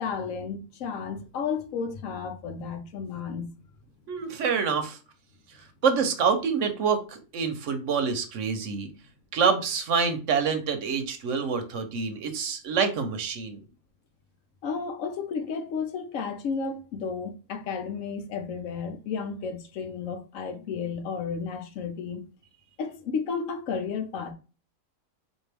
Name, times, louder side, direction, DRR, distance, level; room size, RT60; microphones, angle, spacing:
voice 1, 0.0-3.5 14.6-22.2 22.8-24.3, left 5 dB, 75° left, 1.0 m, -32 dB
voice 2, 4.1-5.0 5.8-8.9 9.3-13.6, right 6 dB, 65° right, 0.9 m, -26 dB
4.4 x 2.5 x 3.3 m
omnidirectional pair, 1.5 m